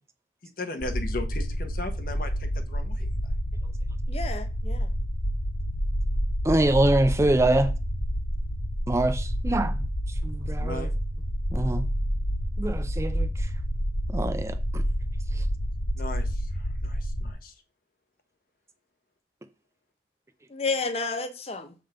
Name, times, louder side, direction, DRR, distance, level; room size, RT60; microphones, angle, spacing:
voice 1, 0.6-3.3 10.6-10.9 16.0-17.5, left 2 dB, 50° left, 1.0 m, -37 dB
sound 1, 0.8-17.3, equal, 70° left, 1.4 m, -29 dB
voice 2, 4.1-4.9 20.5-21.7, left 4 dB, 35° left, 0.7 m, -31 dB
voice 3, 6.4-7.7 8.9-9.7 10.2-10.9 11.5-11.8 12.6-13.3 14.1-14.8, right 1 dB, 15° right, 0.4 m, -24 dB
6.9 x 3.7 x 5.0 m
head